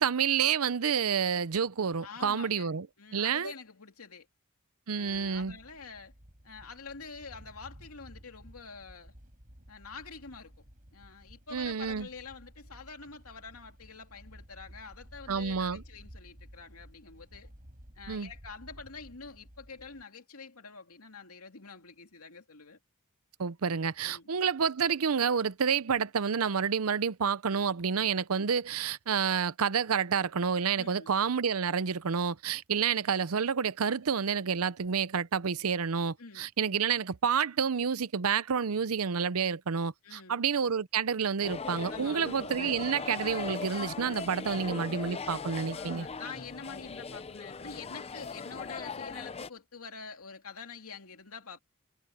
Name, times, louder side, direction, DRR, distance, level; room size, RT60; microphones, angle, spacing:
voice 1, 0.0-2.9 3.1-3.5 4.9-5.6 11.5-12.1 15.3-15.8 18.1-18.3 23.4-46.1, right 6 dB, 75° right, 0.7 m, -29 dB
voice 2, 2.0-4.3 4.9-6.1 6.4-9.1 9.7-10.6 10.9-17.5 18.0-22.8 24.0-24.3 30.7-31.1 36.2-36.5 40.0-40.4 41.9-42.5 45.7-51.6, left 5 dB, 80° left, 2.6 m, -47 dB
sound 1, 5.0-20.0, equal, 40° right, 6.4 m, -54 dB
sound 2, 41.4-49.5, left 4 dB, 30° left, 0.6 m, -39 dB
head